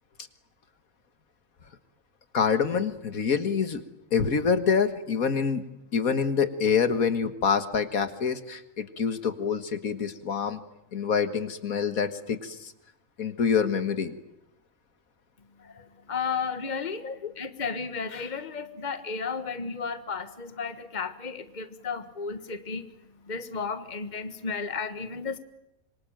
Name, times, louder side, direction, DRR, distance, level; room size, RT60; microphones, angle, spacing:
voice 1, 2.3-3.8 4.1-5.6 5.9-10.6 10.9-12.7 13.2-14.1 17.0-17.3, left 6 dB, 75° left, 10 dB, 2.0 m, -26 dB
voice 2, 15.7-17.0 17.4-22.8 23.3-25.4, left 5 dB, 30° left, 10 dB, 1.6 m, -33 dB
26.5 x 24.0 x 9.0 m, 0.83 s
omnidirectional pair, 1.5 m